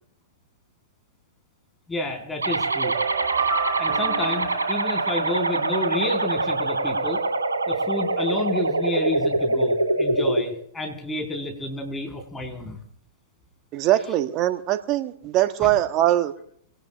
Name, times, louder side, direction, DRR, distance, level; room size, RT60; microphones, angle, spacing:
voice 1, 1.9-3.0 3.8-7.2 7.7-12.8 15.6-15.7, left 2 dB, 10° left, 4.7 m, -30 dB
sound 1, 2.4-10.4, right 2 dB, 85° right, 2.6 m, -24 dB
sound 2, 2.7-5.8, right 6 dB, 65° right, 4.1 m, -30 dB
voice 2, 13.7-16.3, right 13 dB, 35° right, 1.2 m, -22 dB
25.0 x 18.5 x 2.5 m
figure-of-eight pair, 105°, 0 cm